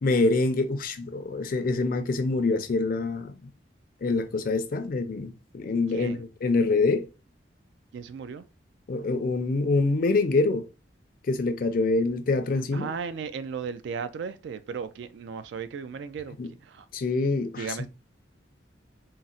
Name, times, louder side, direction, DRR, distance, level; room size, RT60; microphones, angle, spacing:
voice 1, 0.0-3.5 4.0-7.1 8.9-10.7 11.3-12.9 16.4-16.5 16.9-17.9, left 3 dB, 50° left, 0.4 m, -25 dB
voice 2, 5.9-6.2 7.9-8.4 12.7-16.4 16.6-16.8 17.6-17.9, right 6 dB, 70° right, 0.3 m, -35 dB
3.9 x 2.0 x 2.3 m
head